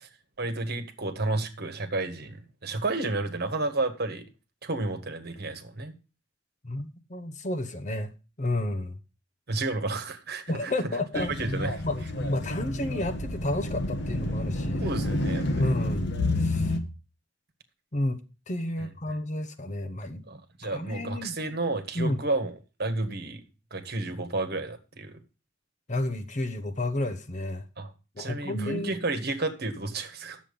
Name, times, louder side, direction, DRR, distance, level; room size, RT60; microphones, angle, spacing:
voice 1, 0.4-4.2 4.6-5.9 9.5-10.7 11.1-11.7 14.8-15.7 20.3-22.5 22.8-23.4 23.7-25.2 27.8-27.9 28.2-30.4, right 2 dB, 55° right, 1.5 m, -31 dB
voice 2, 6.6-9.0 10.5-11.3 11.8-14.9 15.5-16.8 17.9-20.2 20.6-21.4 21.9-22.2 25.9-27.7 28.2-29.0, left 1 dB, 40° left, 1.0 m, -31 dB
sound 1, 11.1-16.8, left 1 dB, 65° left, 1.3 m, -29 dB
10.0 x 7.4 x 5.2 m
head